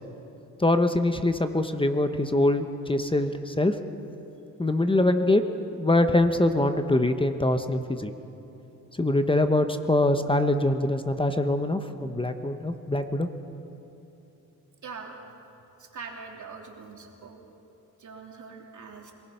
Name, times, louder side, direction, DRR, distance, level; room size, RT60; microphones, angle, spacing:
voice 1, 0.6-3.8 4.6-8.1 8.9-13.3, left 1 dB, 15° left, 8 dB, 1.0 m, -24 dB
voice 2, 14.8-15.2 15.8-17.4 18.0-19.1, right 5 dB, 50° right, 0 dB, 3.3 m, -42 dB
26.0 x 19.0 x 5.8 m, 3.0 s
cardioid pair, 85°, 37 cm